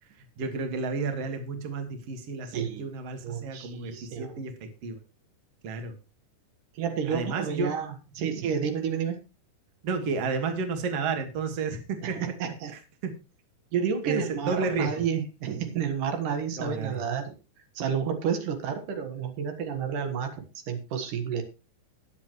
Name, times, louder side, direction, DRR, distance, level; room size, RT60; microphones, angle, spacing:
voice 1, 0.4-3.9 4.2-5.0 5.6-5.9 7.1-7.7 8.2-8.3 9.8-12.2 13.0-13.1 14.0-14.9 16.6-17.0, right 4 dB, 55° right, 6 dB, 2.7 m, -31 dB
voice 2, 2.5-2.9 3.2-4.4 6.7-9.2 12.0-12.7 13.7-17.3 17.7-21.4, right 7 dB, 80° right, 6 dB, 3.1 m, -30 dB
20.5 x 7.6 x 3.1 m, 0.30 s
omnidirectional pair, 3.6 m